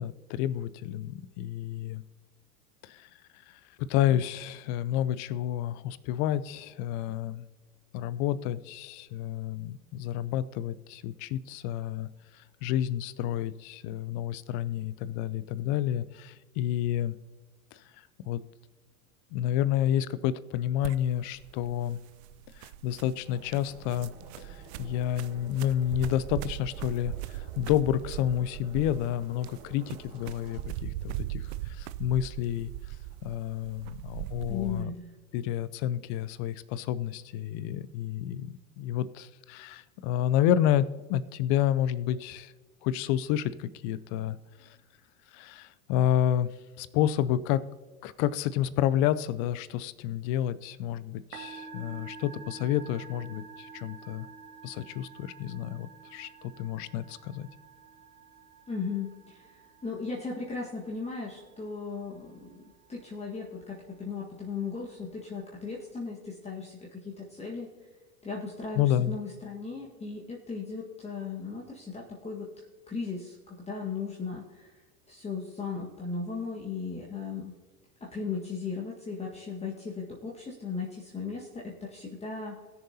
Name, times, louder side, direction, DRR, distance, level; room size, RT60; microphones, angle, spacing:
voice 1, 0.0-2.0 2.8-3.1 3.5-7.4 7.9-12.1 12.3-17.2 17.7-17.8 18.3-18.4 19.3-22.0 22.6-24.1 24.4-32.7 33.2-34.9 35.3-42.5 42.8-44.7 45.3-46.5 46.8-47.6 48.0-54.3 54.6-57.5 68.8-69.2, left 11 dB, 40° left, 17 dB, 0.5 m, -30 dB
sound 1, 20.8-34.8, right 15 dB, 50° right, 0.5 m, -40 dB
sound 2, 23.2-30.6, right 3 dB, 30° right, 3.2 m, -52 dB
voice 2, 34.5-35.1 58.7-62.6 62.9-67.7 68.2-74.7 75.1-77.5 78.0-82.6, left 4 dB, 15° left, -3 dB, 1.6 m, -37 dB
Musical instrument, 51.2-65.9, right 5 dB, 85° right, 1.6 m, -50 dB
20.0 x 6.8 x 2.8 m, 1.3 s
figure-of-eight pair, 85°, 44 cm